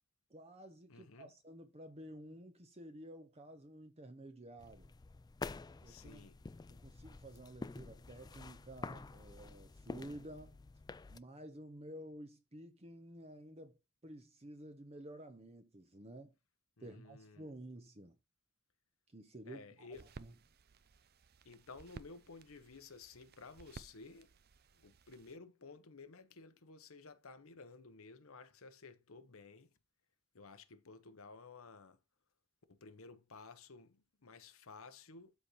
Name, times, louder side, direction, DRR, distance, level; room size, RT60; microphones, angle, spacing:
voice 1, 0.3-4.9 5.8-6.3 6.7-10.6 11.1-16.3 16.8-18.2 19.1-19.9 20.2-20.3, right 1 dB, 30° right, 0.9 m, -52 dB
voice 2, 0.9-1.3 5.8-6.4 16.8-17.5 19.5-20.1 21.4-24.3 24.8-29.7 30.3-32.0 32.7-35.3, left 4 dB, 65° left, 1.0 m, -54 dB
sound 1, 4.6-11.2, left 3 dB, 20° left, 0.3 m, -49 dB
sound 2, 19.9-25.3, right 4 dB, 45° right, 0.6 m, -57 dB
12.5 x 4.3 x 3.1 m
head